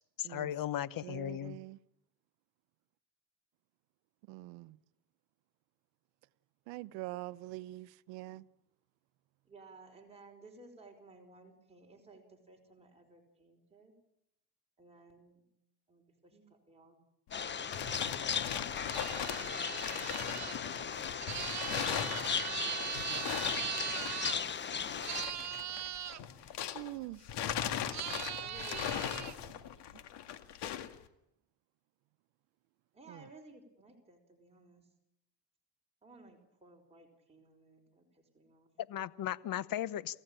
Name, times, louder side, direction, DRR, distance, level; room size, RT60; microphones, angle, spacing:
voice 1, 0.2-1.6 38.8-40.2, left 11 dB, 50° left, 1.1 m, -36 dB
voice 2, 1.0-1.8 4.3-4.8 6.7-8.4 26.7-27.2 29.5-29.6 29.9-30.0 33.1-33.3, right 18 dB, 85° right, 0.9 m, -44 dB
voice 3, 9.4-13.9 14.8-15.5 15.9-17.0 19.2-20.2 26.4-27.0 28.4-29.6 32.9-34.9 36.0-38.7, right 3 dB, 15° right, 5.1 m, -58 dB
sound 1, 17.3-26.9 27.2-31.0, left 10 dB, 70° left, 2.1 m, -40 dB
sound 2, 17.3-25.2, left 7 dB, 25° left, 0.8 m, -37 dB
sound 3, 18.9-24.4 25.0-26.2 27.9-29.4, right 10 dB, 40° right, 1.1 m, -40 dB
28.5 x 16.0 x 9.0 m
cardioid pair, 110°, 43 cm